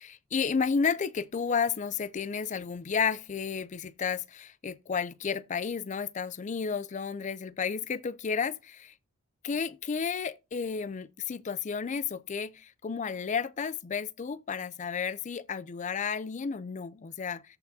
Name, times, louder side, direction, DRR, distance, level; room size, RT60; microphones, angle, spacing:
voice 1, 0.0-8.9 9.4-17.6, left 6 dB, 35° left, 0.4 m, -32 dB
14.0 x 5.8 x 2.7 m
head